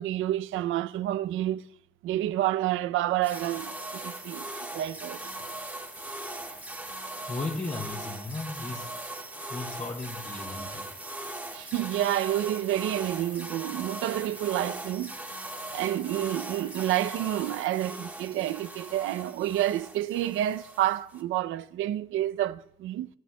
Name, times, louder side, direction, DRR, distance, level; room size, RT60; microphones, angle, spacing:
voice 1, 0.0-1.6 2.0-4.4 4.7-5.2 11.5-15.1 15.7-23.1, right 13 dB, 85° right, 0.5 m, -29 dB
sound 1, 3.2-21.2, right 1 dB, 10° right, 1.7 m, -39 dB
voice 2, 7.3-8.9 9.5-10.9, left 3 dB, 35° left, 2.6 m, -35 dB
19.0 x 16.0 x 2.2 m
cardioid pair, 90°, 20 cm